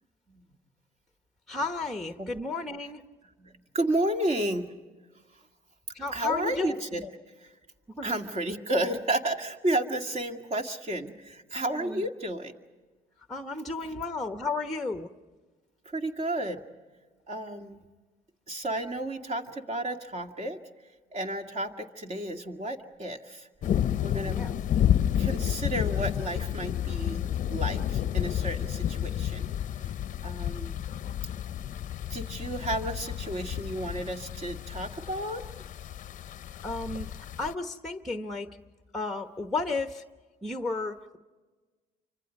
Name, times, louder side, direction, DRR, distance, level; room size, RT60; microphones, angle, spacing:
voice 1, 1.5-3.0 5.9-7.1 8.0-8.2 11.7-12.0 13.3-15.1 24.3-24.5 36.6-38.5 38.9-40.0 40.4-41.2, left 3 dB, ahead, 7 dB, 1.0 m, -33 dB
voice 2, 3.4-4.7 6.1-7.0 8.0-12.5 13.8-13.9 15.9-16.6 17.3-17.8 18.5-20.6 21.1-23.5 24.0-24.4 25.2-29.5 29.8-29.9 30.2-30.8 32.1-35.4, right 1 dB, 40° right, 4 dB, 2.1 m, -32 dB
sound 1, 23.6-37.5, left 10 dB, 50° left, 0.7 m, -30 dB
28.5 x 25.0 x 5.3 m, 1.3 s
cardioid pair, 110°, 17 cm